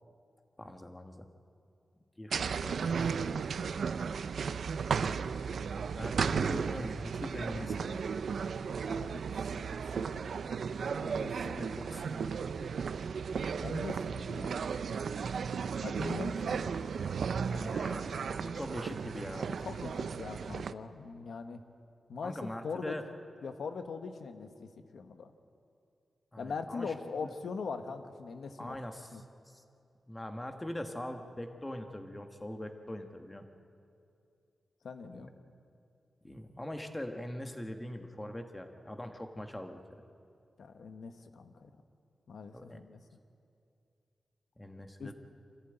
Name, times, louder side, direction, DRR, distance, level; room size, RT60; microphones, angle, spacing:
voice 1, 0.6-1.3 2.2-3.6 5.9-8.1 11.3-12.3 17.5-19.5 22.2-23.0 26.3-26.9 27.2-27.3 28.6-29.6 30.1-33.4 35.1-35.3 36.2-40.0 42.5-42.8 44.6-45.1, left 1 dB, 10° left, 5 dB, 1.3 m, -42 dB
sound 1, 2.3-20.7, right 6 dB, 70° right, 0.5 m, -35 dB
voice 2, 8.8-10.7 11.0-11.7 13.6-14.7 15.8-16.6 19.6-21.6 22.1-23.0 23.4-25.3 26.4-28.8 29.1-29.2 34.8-35.3 40.6-41.7 42.3-43.0 45.0-45.1, left 5 dB, 75° left, 7 dB, 1.3 m, -42 dB
25.5 x 15.5 x 9.1 m, 2.5 s
wide cardioid pair, 180°, 0 cm